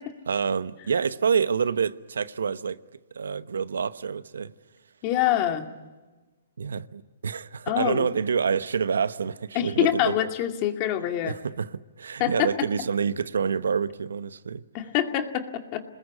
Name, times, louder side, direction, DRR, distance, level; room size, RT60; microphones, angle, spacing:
voice 1, 0.3-2.8 3.1-4.5 6.6-10.2 11.3-14.6, right 6 dB, 85° right, 1.0 m, -27 dB
voice 2, 5.0-5.7 7.7-8.1 9.5-11.4 12.2-12.5 14.7-15.8, left 11 dB, 35° left, 2.3 m, -25 dB
28.0 x 20.5 x 8.4 m
hypercardioid pair, 145°, 0 cm